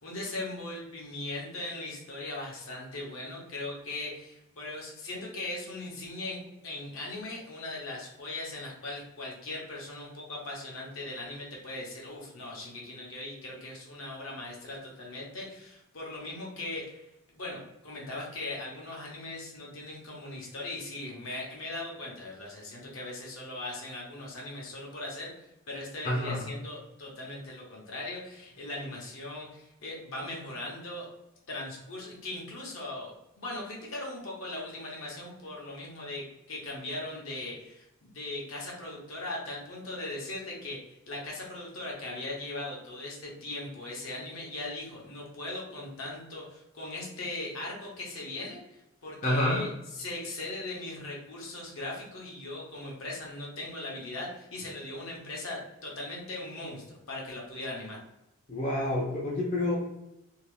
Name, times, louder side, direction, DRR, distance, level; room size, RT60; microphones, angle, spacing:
voice 1, 0.0-17.1 17.3-25.3 25.7-31.1 31.5-33.1 33.4-48.6 49.0-58.0, left 2 dB, 65° left, -2 dB, 0.8 m, -39 dB
voice 2, 26.0-26.5 49.2-49.6 58.5-59.8, left 1 dB, 35° left, -5 dB, 0.5 m, -28 dB
2.7 x 2.0 x 3.1 m, 0.89 s
head